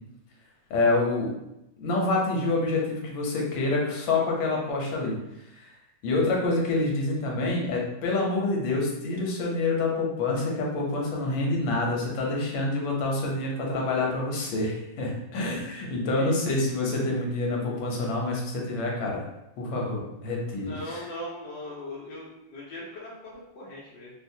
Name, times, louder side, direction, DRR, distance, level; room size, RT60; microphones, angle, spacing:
voice 1, 0.7-1.4 1.8-5.2 5.6-5.7 6.0-19.2 19.6-21.0, left 2 dB, 90° left, -1 dB, 1.5 m, -27 dB
voice 2, 20.6-24.1, left 1 dB, 75° left, -6 dB, 1.4 m, -39 dB
4.4 x 2.1 x 2.6 m, 0.89 s
omnidirectional pair, 2.0 m